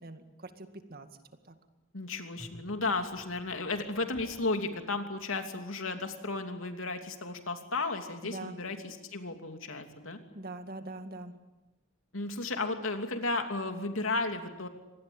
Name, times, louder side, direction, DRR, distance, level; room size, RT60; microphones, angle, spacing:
voice 1, 0.0-1.1 1.5-1.6 8.2-8.6 10.3-11.3, right 2 dB, 50° right, 8 dB, 2.1 m, -43 dB
voice 2, 1.9-10.2 12.1-14.7, left 3 dB, 85° left, 6 dB, 2.9 m, -34 dB
sound 1, 2.3-4.6, equal, ahead, 6.9 m, -52 dB
26.0 x 19.5 x 8.9 m, 1.1 s
head